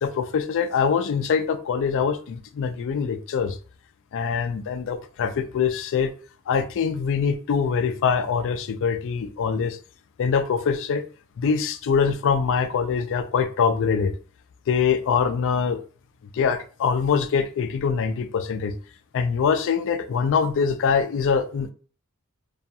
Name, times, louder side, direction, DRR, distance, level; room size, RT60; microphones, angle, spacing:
voice 1, 0.0-3.6 4.1-6.1 6.5-9.8 10.2-11.0 11.4-14.1 14.7-15.8 16.3-18.7 19.1-21.7, left 6 dB, 60° left, 9 dB, 0.3 m, -23 dB
2.3 x 2.2 x 2.7 m, 0.39 s
head